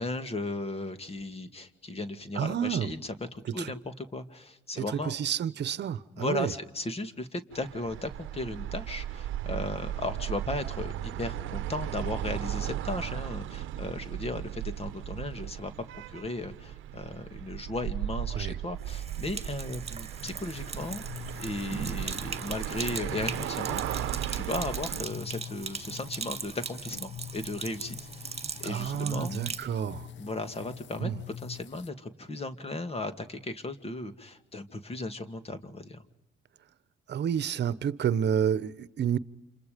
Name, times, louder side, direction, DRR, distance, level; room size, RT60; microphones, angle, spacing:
voice 1, 0.0-5.2 6.2-15.7 16.1-29.4 30.2-31.1 31.4-36.0, left 2 dB, 30° left, 2.3 m, -36 dB
voice 2, 2.3-2.9 3.6-3.7 4.8-6.5 18.3-18.6 28.6-30.1 31.0-31.2 37.1-39.2, right 9 dB, 60° right, 1.1 m, -29 dB
sound 1, 7.5-25.1, right 12 dB, 85° right, 0.9 m, -36 dB
Sink (filling or washing), 18.8-29.7, right 5 dB, 30° right, 1.9 m, -39 dB
sound 2, 20.2-31.9, left 10 dB, 65° left, 1.0 m, -45 dB
30.0 x 27.5 x 5.2 m
cardioid pair, 90°, 20 cm